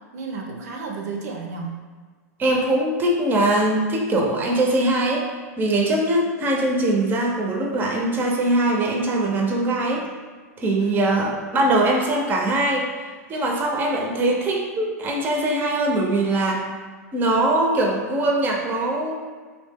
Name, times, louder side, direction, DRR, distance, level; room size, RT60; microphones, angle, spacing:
voice 1, 0.1-1.8 10.8-11.1, right 4 dB, 70° right, 2 dB, 0.4 m, -32 dB
voice 2, 2.4-5.3 5.6-10.0 10.6-16.7 17.1-19.1, right 1 dB, 20° right, 0 dB, 0.5 m, -22 dB
2.5 x 2.0 x 3.4 m, 1.5 s
hypercardioid pair, 115°, 9 cm